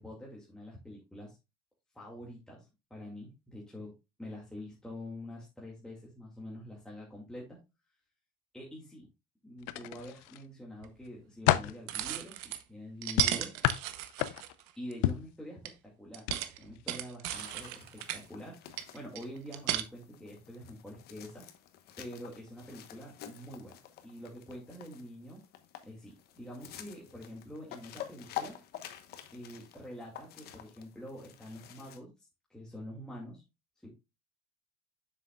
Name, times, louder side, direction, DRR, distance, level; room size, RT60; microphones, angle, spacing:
voice 1, 0.0-1.4 1.9-3.9 4.2-7.6 8.5-9.1 9.4-13.5 14.8-15.7 16.0-16.2 16.6-21.4 22.0-25.4 25.8-28.6 29.3-32.1 32.5-33.4 33.8-33.9, left 1 dB, 5° left, -5 dB, 2.1 m, -46 dB
sound 1, 9.6-10.4 10.9-11.8 13.2-14.6 15.0-15.3 16.2-16.4 16.8-16.9, left 15 dB, 80° left, 0.6 m, -30 dB
sound 2, 10.8-10.9 11.9-12.6 13.0-14.9 15.6-15.7 16.1-18.2 18.8-19.8, right 13 dB, 80° right, 0.8 m, -35 dB
sound 3, 17.3-32.0, left 11 dB, 55° left, 1.1 m, -48 dB
7.5 x 6.5 x 2.3 m, 0.26 s
supercardioid pair, 115°, 19 cm